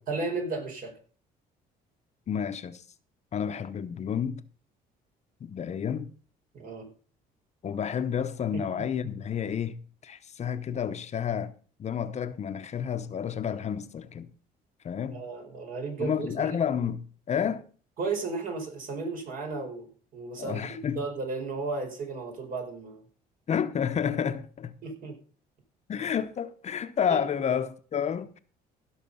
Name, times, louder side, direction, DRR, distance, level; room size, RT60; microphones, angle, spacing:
voice 1, 0.1-0.9 6.5-6.9 8.5-8.8 15.1-16.6 18.0-19.9 20.1-20.7 20.9-23.0 24.8-25.2 27.1-27.2, right 4 dB, 55° right, 5.0 m, -34 dB
voice 2, 2.3-2.8 3.3-4.4 5.4-6.1 7.6-11.5 11.8-14.3 14.8-15.2 16.0-17.7 20.4-21.0 23.5-24.7 25.9-28.4, left 8 dB, 40° left, 0.8 m, -30 dB
16.0 x 6.5 x 5.5 m
cardioid pair, 110°, 17 cm